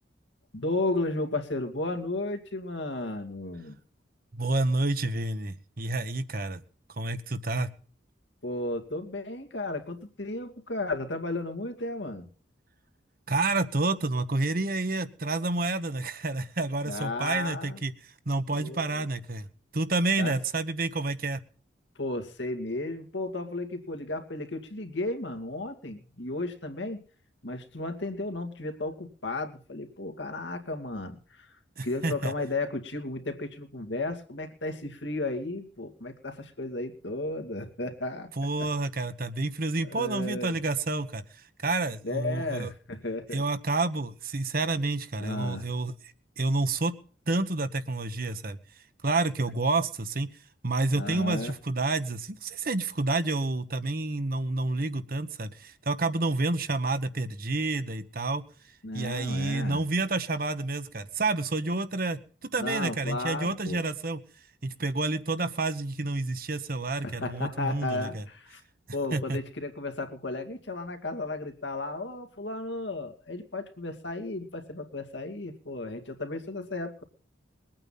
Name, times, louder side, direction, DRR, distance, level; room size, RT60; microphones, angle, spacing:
voice 1, 0.5-3.8 8.4-12.3 16.8-17.8 18.5-19.1 20.2-20.4 22.0-27.0 27.4-38.7 39.8-40.5 42.0-43.4 45.2-45.7 50.9-51.5 58.8-59.8 62.6-63.8 67.0-68.6 68.9-77.0, left 2 dB, 70° left, 6 dB, 2.4 m, -34 dB
voice 2, 4.3-6.6 7.0-7.7 13.3-17.9 18.3-19.5 19.7-21.4 31.8-32.3 38.4-41.2 41.6-42.7 43.3-45.9 46.4-46.9 47.3-48.6 49.0-50.3 50.6-58.4 58.9-62.2 62.5-64.2 64.6-68.2 69.1-69.4, right 2 dB, 50° right, 11 dB, 1.2 m, -29 dB
21.5 x 8.9 x 5.7 m, 0.42 s
head